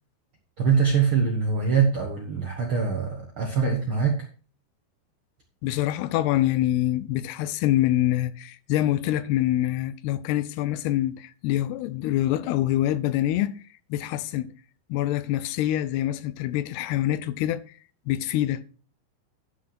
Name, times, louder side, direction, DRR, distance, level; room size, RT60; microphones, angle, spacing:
voice 1, 0.6-4.2, right 6 dB, 65° right, 1.3 m, -23 dB
voice 2, 5.6-13.6 13.9-14.5 14.9-17.6 18.1-18.7, left 13 dB, 85° left, 2.7 m, -25 dB
10.5 x 6.5 x 4.3 m
omnidirectional pair, 4.7 m